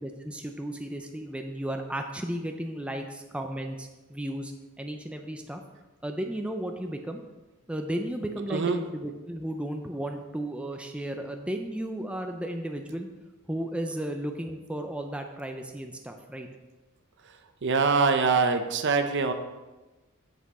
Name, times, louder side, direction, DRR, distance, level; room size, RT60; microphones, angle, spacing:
voice 1, 0.0-4.5 4.8-5.6 6.0-7.2 7.7-13.1 13.5-16.5, right 1 dB, 5° right, 4 dB, 0.4 m, -34 dB
voice 2, 17.6-19.3, right 4 dB, 55° right, 7 dB, 0.6 m, -23 dB
7.4 x 6.1 x 4.1 m, 1.1 s
head